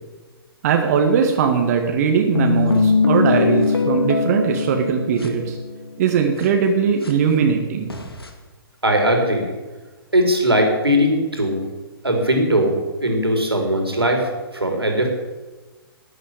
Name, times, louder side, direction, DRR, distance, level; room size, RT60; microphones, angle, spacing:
voice 1, 0.6-5.6 6.0-7.9, right 6 dB, 40° right, 4 dB, 1.9 m, -19 dB
sound 1, 2.4-6.0 6.4-6.5 7.0-7.1 7.9-8.3, left 4 dB, 75° left, 2.6 m, -21 dB
voice 2, 8.8-9.5 10.1-11.6 12.0-15.1, equal, 80° right, 2 dB, 4.1 m, -19 dB
13.0 x 10.0 x 10.0 m, 1.2 s
figure-of-eight pair, 120°, 13 cm